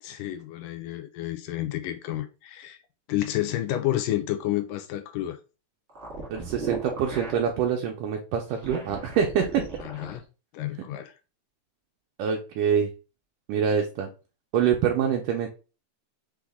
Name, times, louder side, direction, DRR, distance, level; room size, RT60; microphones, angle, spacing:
voice 1, 0.0-2.8 3.1-5.4 9.8-10.2 10.5-11.1, left 14 dB, 80° left, 1.9 m, -30 dB
sound 1, 5.9-7.5 8.4-10.2, right 3 dB, 55° right, 0.7 m, -37 dB
voice 2, 6.3-9.6 12.2-12.9 13.5-14.1 14.5-15.5, right 8 dB, 85° right, 1.8 m, -25 dB
6.1 x 2.1 x 3.4 m
omnidirectional pair, 4.1 m